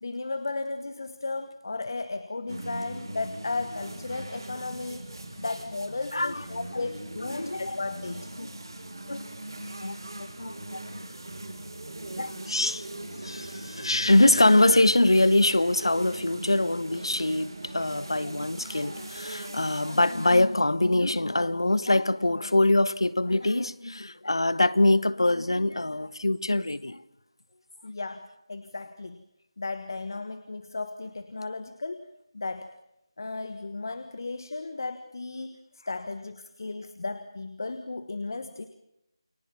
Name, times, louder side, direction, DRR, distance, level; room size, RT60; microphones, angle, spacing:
voice 1, 0.0-5.1 5.3-8.3 27.8-29.2 29.6-32.1 32.3-32.7 33.2-35.6 35.9-38.7, left 3 dB, 45° left, 1.6 m, -35 dB
sound 1, 2.5-20.4, right 1 dB, 55° right, 5.6 m, -40 dB
voice 2, 6.1-6.4 6.7-6.8 7.3-7.8 8.4-8.5 9.1-9.2 9.8-11.1 12.1-12.8 13.2-27.0, left 2 dB, 65° left, 1.3 m, -24 dB
30.0 x 21.5 x 7.2 m
figure-of-eight pair, 160°, 3 cm